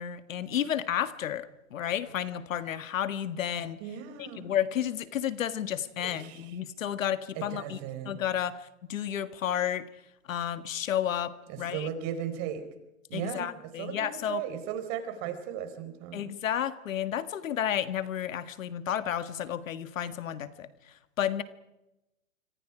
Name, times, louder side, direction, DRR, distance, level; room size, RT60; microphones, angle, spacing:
voice 1, 0.0-3.8 4.2-7.8 8.1-9.9 10.3-11.9 13.1-14.4 16.1-21.4, left 10 dB, 75° left, 12 dB, 1.7 m, -32 dB
voice 2, 3.8-4.5 6.0-6.5 7.4-8.2 11.5-12.7 13.1-16.3, right 9 dB, 40° right, 8 dB, 4.5 m, -37 dB
26.0 x 25.5 x 5.0 m, 0.94 s
hypercardioid pair, 125°, 40 cm